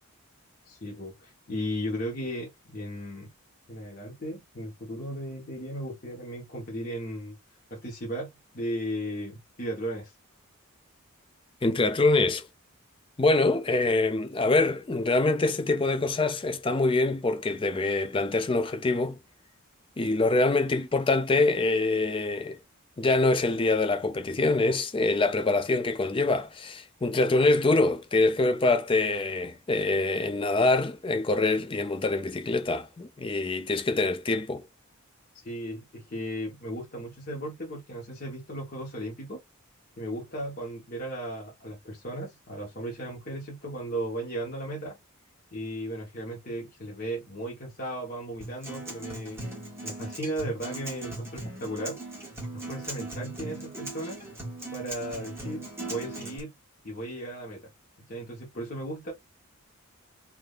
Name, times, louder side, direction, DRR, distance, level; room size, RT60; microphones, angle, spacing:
voice 1, 0.7-3.3 3.7-7.4 7.7-10.1 35.3-39.4 40.0-44.9 45.5-49.4 49.8-52.0 52.5-54.2 54.7-56.5 56.8-57.7 58.1-59.1, equal, 40° left, 1.1 m, -36 dB
voice 2, 11.6-12.4 13.2-19.2 20.0-22.6 23.0-34.6, left 2 dB, 25° left, 0.4 m, -25 dB
Acoustic guitar, 48.4-56.4, right 2 dB, 10° right, 1.5 m, -39 dB
3.6 x 2.6 x 2.4 m
head